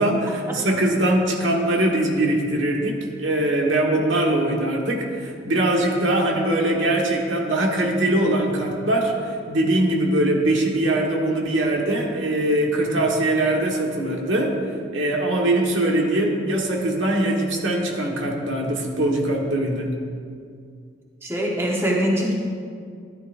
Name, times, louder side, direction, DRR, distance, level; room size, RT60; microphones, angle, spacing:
voice 1, 0.0-14.5 14.9-19.9, right 1 dB, 90° right, 0 dB, 1.5 m, -22 dB
voice 2, 21.2-22.3, equal, 15° right, -3 dB, 1.1 m, -23 dB
13.5 x 11.0 x 2.6 m, 2.3 s
head